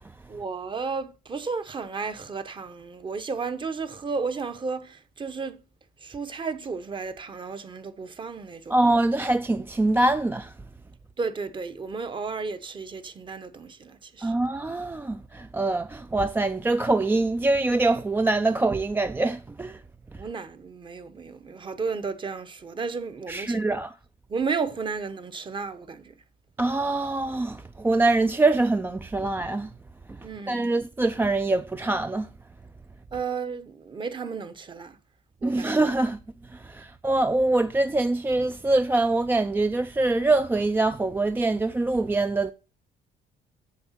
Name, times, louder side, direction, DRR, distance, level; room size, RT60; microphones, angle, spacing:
voice 1, 0.3-5.6 6.0-8.7 11.2-14.3 20.2-23.8 24.3-26.1 30.2-30.7 33.1-35.0 35.4-35.7, right 4 dB, 30° right, 1.0 m, -33 dB
voice 2, 8.7-10.5 14.2-19.8 23.3-23.9 26.6-29.7 30.5-32.3 35.4-36.2 36.5-42.5, right 2 dB, 15° right, 0.4 m, -24 dB
7.8 x 7.1 x 5.7 m
cardioid pair, 110°, 17 cm